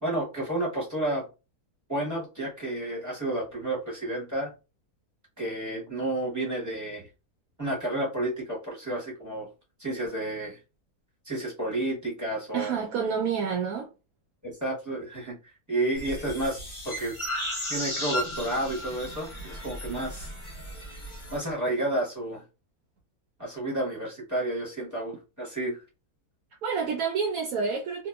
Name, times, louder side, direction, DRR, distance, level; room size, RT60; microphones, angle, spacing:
voice 1, 0.0-1.3 1.9-4.5 5.4-7.0 7.6-9.5 9.8-10.6 11.2-12.7 14.4-15.4 15.7-16.6 16.8-17.1 17.7-20.3 21.3-22.4 23.4-25.8, right 1 dB, 15° right, 0.8 m, -31 dB
voice 2, 12.5-13.9 26.6-28.1, right 6 dB, 70° right, 0.9 m, -28 dB
sound 1, 15.9-21.4, equal, 30° left, 0.6 m, -35 dB
2.8 x 2.2 x 2.3 m
omnidirectional pair, 1.6 m